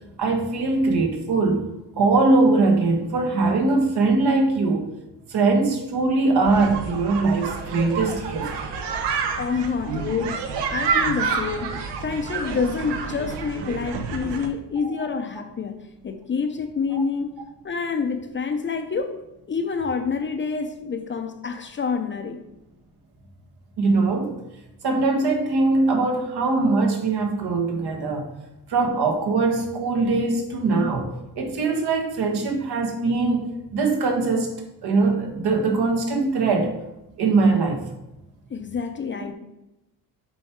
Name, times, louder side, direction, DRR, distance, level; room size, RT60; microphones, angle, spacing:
voice 1, 0.2-1.6 2.0-4.9 5.3-8.5 14.8-15.1 16.9-17.0 23.8-24.3 24.8-28.3 28.7-34.5 34.8-36.7 37.2-37.8, right 3 dB, 65° right, 2 dB, 1.5 m, -21 dB
sound 1, 6.4-14.5, right 5 dB, 85° right, 1.0 m, -28 dB
voice 2, 9.4-19.2 19.5-22.4 38.5-39.3, left 5 dB, 30° left, 6 dB, 0.6 m, -28 dB
7.3 x 4.6 x 4.6 m, 0.94 s
cardioid pair, 130°, 41 cm